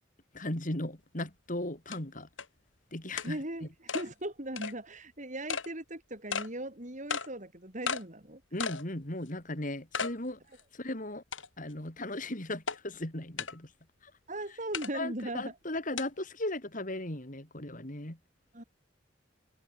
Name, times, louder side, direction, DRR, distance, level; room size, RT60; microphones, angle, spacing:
voice 1, 0.3-2.3 2.9-3.7 8.5-10.4 10.7-11.2 11.6-13.7 14.9-18.2, left 1 dB, 45° left, 3.6 m, -37 dB
sound 1, 1.2-1.3 1.9-2.0 2.4-2.5 3.2-3.3 3.9-4.1 4.6-4.7 5.5-5.7 6.3-6.5 7.1-7.3 7.9-8.0 8.6-8.8 9.3-9.4 9.9-10.1 10.6-10.7 11.3-11.7 12.7-12.8 13.4-13.5 14.7-14.9 16.0-16.1, left 5 dB, 85° left, 5.5 m, -34 dB
voice 2, 3.2-8.4 14.3-15.5 18.5-18.6, right 1 dB, 40° right, 6.6 m, -38 dB
open air
head